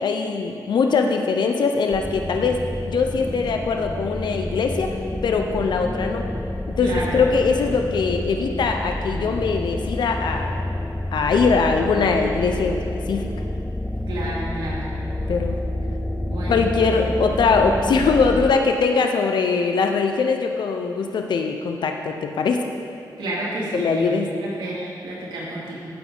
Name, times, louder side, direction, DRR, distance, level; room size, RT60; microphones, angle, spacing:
voice 1, 0.0-4.9 5.2-6.3 6.7-10.5 11.1-12.8 13.1-13.3 15.3-15.6 16.5-22.6 23.7-24.3, left 4 dB, 70° left, 4 dB, 0.7 m, -21 dB
sound 1, 1.9-18.5, left 1 dB, 10° left, 0.4 m, -29 dB
voice 2, 6.8-7.2 14.1-14.8 16.2-16.9 23.2-25.8, right 1 dB, 85° right, -6 dB, 2.6 m, -30 dB
15.5 x 6.9 x 3.9 m, 2.5 s
wide cardioid pair, 110°, 8 cm